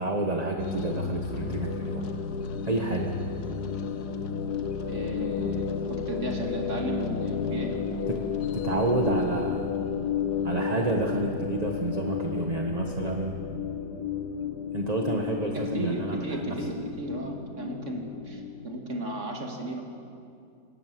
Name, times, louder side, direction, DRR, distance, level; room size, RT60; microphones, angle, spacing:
voice 1, 0.0-2.1 2.6-3.2 8.1-8.2 8.5-9.8 10.4-13.4 14.7-16.6, right 2 dB, 25° right, 2 dB, 1.3 m, -29 dB
sound 1, 0.6-18.7, left 6 dB, 75° left, 1.6 m, -32 dB
voice 2, 4.9-7.8 15.5-19.8, right 1 dB, 45° right, 2 dB, 2.7 m, -34 dB
19.5 x 19.0 x 7.7 m, 2.4 s
omnidirectional pair, 1.7 m